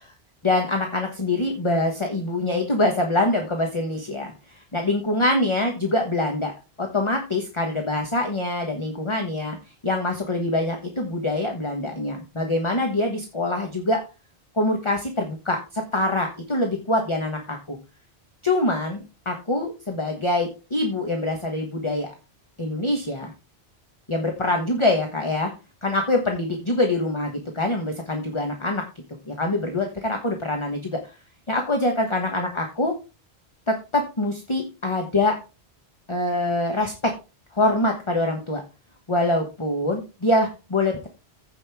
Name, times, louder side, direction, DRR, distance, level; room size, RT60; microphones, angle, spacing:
voice 1, 0.4-9.6 9.8-14.0 14.5-17.8 18.4-22.1 22.6-23.3 24.1-25.5 25.8-28.8 29.3-31.0 31.5-32.9 33.7-35.3 36.1-37.1 37.5-38.6 39.1-41.1, left 2 dB, 30° left, 3 dB, 1.3 m, -24 dB
15.0 x 5.3 x 3.5 m, 0.29 s
omnidirectional pair, 1.1 m